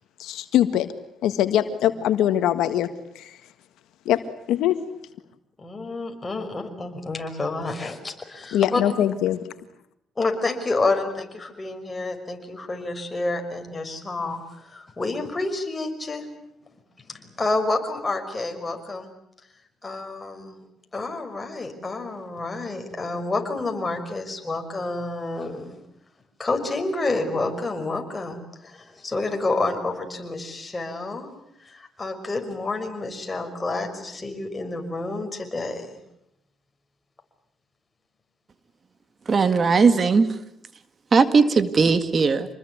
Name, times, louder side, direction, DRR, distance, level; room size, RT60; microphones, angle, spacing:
voice 1, 0.2-0.9 1.2-2.9 3.1-3.4 4.0-4.2 4.5-4.8 8.5-9.4, left 11 dB, 90° left, 10 dB, 1.7 m, -22 dB
voice 2, 5.6-8.8 10.2-16.3 17.1-19.1 19.8-20.6 20.9-25.8 26.4-31.3 31.6-35.9 41.8-42.0, left 2 dB, 20° left, 4 dB, 5.8 m, -29 dB
voice 3, 39.3-40.3 41.1-42.5, right 4 dB, 40° right, 12 dB, 1.9 m, -18 dB
27.0 x 20.5 x 9.6 m, 0.77 s
cardioid pair, 90°, 0 cm